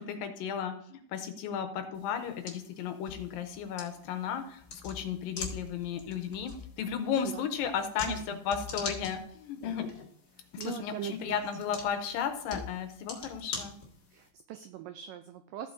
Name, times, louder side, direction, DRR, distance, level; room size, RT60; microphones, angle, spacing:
voice 1, 0.0-9.9 10.5-13.7, left 7 dB, 80° left, 7 dB, 2.3 m, -34 dB
sound 1, 1.9-14.3, left 4 dB, 50° left, 1.2 m, -44 dB
voice 2, 10.4-11.4 14.1-15.7, right 11 dB, 85° right, 9 dB, 1.9 m, -41 dB
15.0 x 8.3 x 2.6 m, 0.63 s
omnidirectional pair, 4.4 m